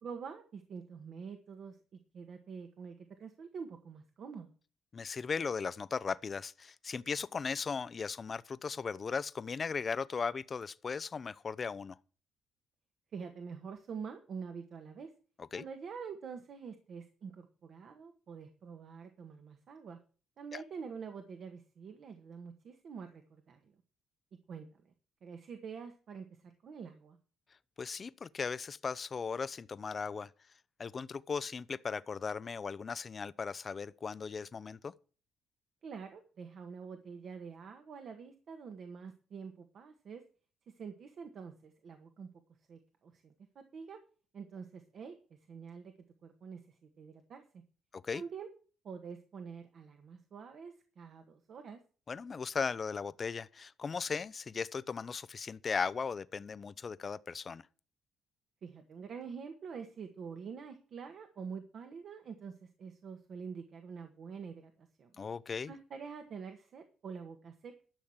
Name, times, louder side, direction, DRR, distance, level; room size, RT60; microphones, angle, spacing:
voice 1, 0.0-1.8 2.1-4.5 13.1-15.1 15.5-20.0 20.4-23.7 24.5-24.9 25.2-27.2 35.8-40.2 40.8-42.3 42.7-44.0 44.3-45.9 46.2-47.6 48.1-48.5 48.8-51.8 58.6-65.1 65.7-67.8, right 6 dB, 60° right, 1.6 m, -46 dB
voice 2, 4.9-11.9 15.4-15.6 20.5-20.6 27.8-30.3 30.8-34.9 47.9-48.2 52.1-57.6 65.2-65.7, left 5 dB, 40° left, 0.6 m, -37 dB
12.0 x 6.4 x 7.3 m
cardioid pair, 90°, 0 cm